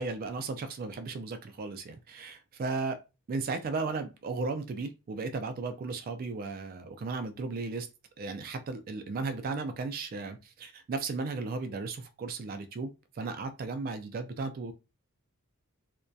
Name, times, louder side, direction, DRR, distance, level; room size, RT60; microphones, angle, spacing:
voice 1, 0.0-3.0 3.3-7.9 8.2-12.9 13.2-14.7, right 3 dB, 40° right, 0.3 m, -35 dB
2.6 x 2.1 x 2.2 m
head